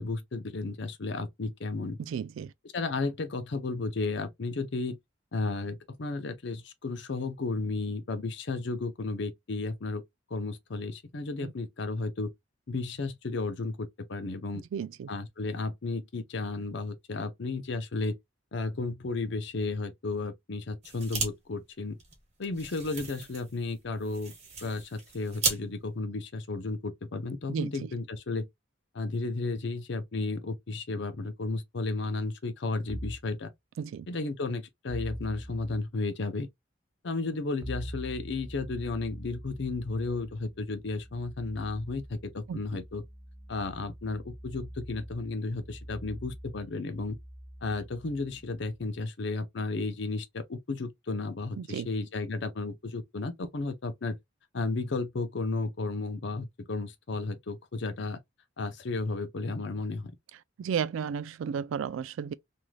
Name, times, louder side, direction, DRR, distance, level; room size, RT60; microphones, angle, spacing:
voice 1, 0.0-2.0 2.7-5.0 5.3-10.0 10.3-12.3 12.7-14.6 15.1-18.2 18.5-22.0 22.4-24.3 24.6-28.5 28.9-33.5 34.1-36.5 37.0-43.0 43.5-47.2 47.6-54.2 54.5-58.2 58.6-60.1, left 3 dB, 60° left, 0.6 m, -33 dB
voice 2, 2.1-2.5 11.4-11.5 14.7-15.1 27.5-27.9 33.8-34.1 42.5-42.6 51.6-51.9 60.6-62.3, right 7 dB, 80° right, 0.3 m, -33 dB
sound 1, 20.8-21.3 21.6-21.7 22.0-25.6, right 4 dB, 35° right, 1.2 m, -35 dB
sound 2, 32.9-33.3 34.9-35.8 37.6-49.0, equal, 10° right, 0.6 m, -44 dB
3.1 x 2.6 x 2.3 m
head